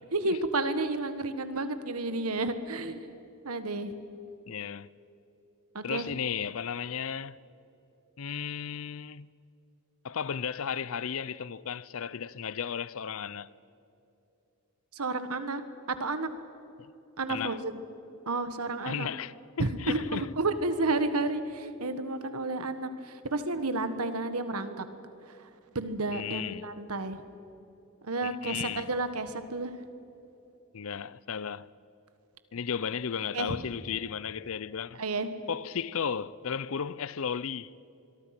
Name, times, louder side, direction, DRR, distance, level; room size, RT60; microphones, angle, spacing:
voice 1, 0.1-3.0 3.4-3.9 5.7-6.0 14.9-15.6 16.0-16.3 17.2-17.8 18.3-19.1 19.6-24.8 25.4-25.5 25.7-27.2 28.0-29.8 33.3-33.6 35.0-35.3, right 2 dB, 85° right, 1.5 m, -31 dB
voice 2, 4.5-4.9 5.8-7.4 8.2-9.3 10.0-13.5 17.3-17.6 18.8-20.3 26.1-26.6 28.2-28.9 30.7-31.7 32.5-35.0 35.5-37.7, left 7 dB, 65° left, 0.6 m, -34 dB
25.0 x 22.5 x 6.0 m
head